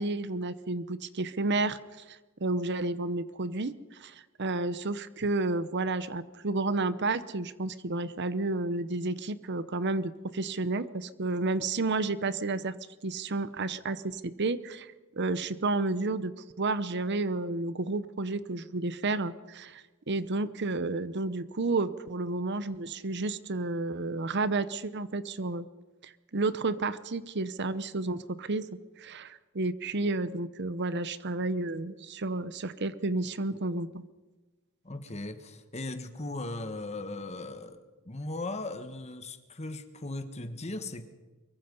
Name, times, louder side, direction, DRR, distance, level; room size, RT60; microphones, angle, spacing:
voice 1, 0.0-3.7 4.0-12.8 13.0-25.7 26.0-28.7 29.0-34.0, right 3 dB, 55° right, 15 dB, 0.8 m, -31 dB
voice 2, 34.8-41.1, left 2 dB, 30° left, 9 dB, 1.5 m, -38 dB
24.0 x 22.5 x 5.5 m, 1.2 s
head